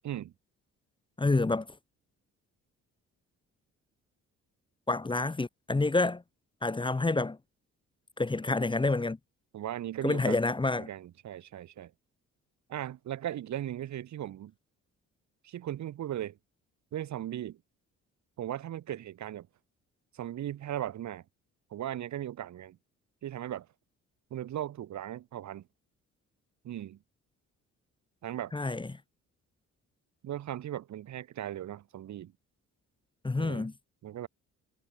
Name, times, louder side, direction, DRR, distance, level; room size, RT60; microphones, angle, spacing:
voice 1, 1.2-1.7 4.9-6.2 6.6-7.4 8.2-9.2 10.0-10.9 28.5-28.9 33.2-33.7, left 3 dB, 15° left, 1.2 m, -28 dB
voice 2, 9.5-10.4 10.8-11.9 12.7-14.5 15.4-16.4 16.9-17.6 18.4-19.5 20.1-21.2 21.7-22.8 23.2-23.7 24.3-25.6 26.6-27.0 28.2-28.5 30.2-32.3 33.4-33.7 34.0-34.3, right 11 dB, 65° right, 1.8 m, -37 dB
cardioid pair, 90°, 30 cm